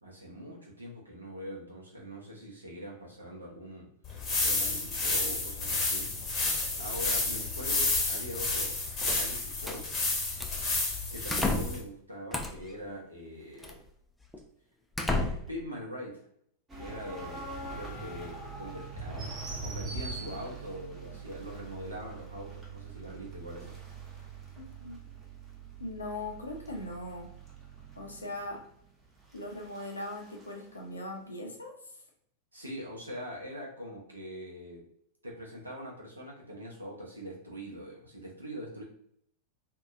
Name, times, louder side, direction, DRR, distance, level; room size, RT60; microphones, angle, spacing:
voice 1, 0.0-3.9 4.4-6.1 6.4-8.7 9.0-9.9 11.1-13.8 15.1-16.2 16.7-23.8 32.5-34.8 35.2-38.8, equal, 80° right, -3 dB, 0.8 m, -43 dB
sound 1, 4.0-11.8, left 3 dB, 30° left, 0.8 m, -30 dB
sound 2, 9.0-9.8 10.4-10.7 11.3-11.9 12.3-12.7 13.6-13.8 14.3-14.4 14.9-15.6, left 2 dB, 5° left, 0.4 m, -32 dB
sound 3, 16.7-30.5, right 3 dB, 20° right, 0.7 m, -43 dB
voice 2, 24.6-25.0 25.8-27.3 28.0-28.7 29.3-31.7, left 1 dB, 80° left, 1 dB, 0.6 m, -40 dB
2.7 x 2.2 x 2.4 m, 0.69 s
figure-of-eight pair, 90°, 0 cm